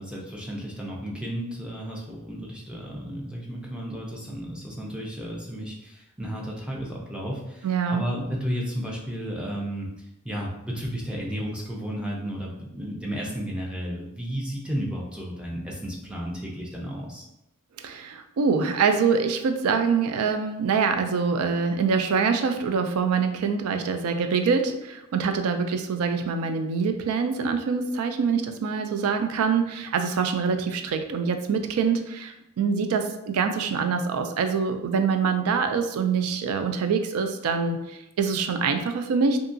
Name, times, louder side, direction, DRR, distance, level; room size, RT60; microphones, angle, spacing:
voice 1, 0.0-9.9 10.2-17.2, equal, 5° right, -3 dB, 0.4 m, -33 dB
voice 2, 7.6-8.0 17.8-39.4, right 5 dB, 80° right, 7 dB, 0.3 m, -25 dB
2.7 x 2.3 x 2.5 m, 0.87 s
head